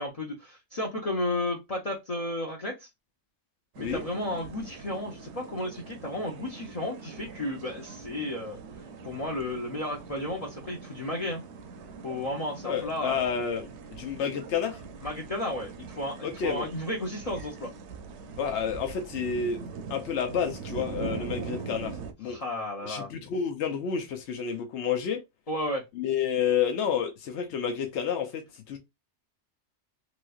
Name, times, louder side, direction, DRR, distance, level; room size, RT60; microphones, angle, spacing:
voice 1, 0.0-2.9 3.8-8.6 9.0-11.4 12.0-13.2 15.0-17.7 22.2-23.1 25.5-25.8, left 1 dB, 40° left, 0.7 m, -33 dB
sound 1, 3.8-22.1, right 5 dB, 75° right, 0.8 m, -42 dB
voice 2, 12.6-14.8 16.2-16.7 18.4-19.6 19.9-22.4 22.8-25.2 25.9-28.4 28.7-28.8, left 7 dB, 80° left, 1.0 m, -30 dB
3.2 x 3.1 x 2.3 m
omnidirectional pair, 1.2 m